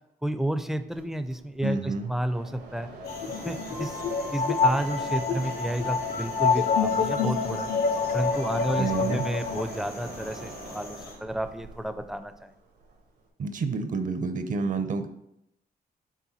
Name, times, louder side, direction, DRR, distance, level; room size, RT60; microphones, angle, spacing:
voice 1, 0.2-2.9 3.3-4.0 4.3-7.7 8.1-12.5, right 1 dB, ahead, 9 dB, 0.4 m, -31 dB
Mechanisms, 0.9-13.3, right 3 dB, 90° right, 1.4 m, -44 dB
voice 2, 1.6-2.1 8.8-9.3 13.4-15.1, right 4 dB, 50° right, 9 dB, 0.6 m, -29 dB
sound 1, 3.0-11.1, left 1 dB, 80° left, 2.0 m, -41 dB
sound 2, 3.0-9.6, left 5 dB, 65° left, 0.5 m, -27 dB
7.3 x 3.5 x 4.1 m, 0.81 s
cardioid pair, 125°, 17 cm